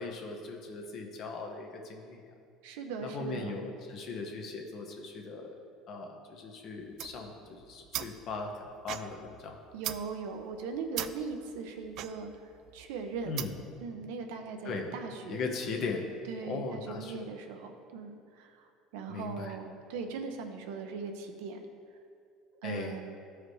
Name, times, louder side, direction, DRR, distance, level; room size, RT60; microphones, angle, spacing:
voice 1, 0.0-2.3 3.0-5.6 5.9-9.6 13.3-13.5 14.6-15.0 15.3-16.1 16.5-17.1 19.1-19.5 22.6-23.0, left 4 dB, 55° left, 2 dB, 1.1 m, -38 dB
voice 2, 2.6-3.7 9.7-12.3 12.7-13.4 13.8-15.4 16.3-18.7 18.9-21.6 22.6-23.0, right 5 dB, 85° right, 5 dB, 0.8 m, -39 dB
sound 1, 6.8-13.8, right 12 dB, 60° right, 0.3 m, -42 dB
12.5 x 4.9 x 3.2 m, 2.4 s
supercardioid pair, 105°, 0 cm